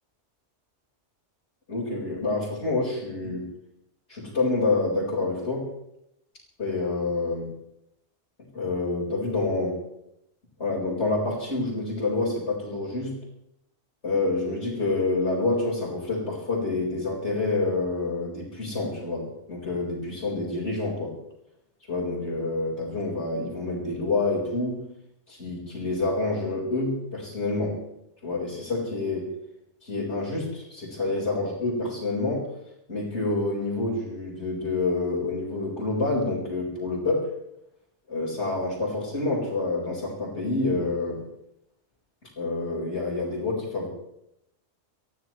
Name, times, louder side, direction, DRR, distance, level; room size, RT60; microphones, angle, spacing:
voice 1, 1.7-3.5 4.1-5.7 6.6-7.5 8.5-9.8 10.6-13.2 14.0-21.1 21.9-24.8 25.3-27.8 28.2-29.3 29.8-32.5 32.9-37.3 38.1-41.2 42.4-43.9, left 3 dB, 65° left, -7 dB, 5.3 m, -27 dB
27.0 x 15.5 x 3.2 m, 0.81 s
omnidirectional pair, 1.2 m